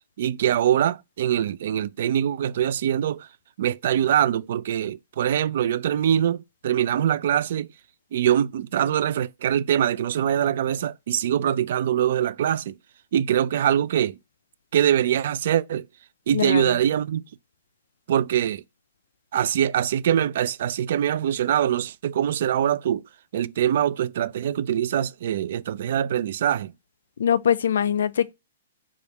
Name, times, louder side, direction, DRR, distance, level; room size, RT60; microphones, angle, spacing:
voice 1, 0.2-3.3 3.6-7.7 8.1-12.8 13.1-14.2 14.7-15.9 16.3-17.2 18.1-18.6 19.3-23.0 23.3-26.7, right 10 dB, 60° right, 0.3 m, -23 dB
voice 2, 16.3-16.8 27.2-28.3, left 8 dB, 75° left, 0.3 m, -22 dB
3.3 x 2.4 x 4.1 m
hypercardioid pair, 140°, 0 cm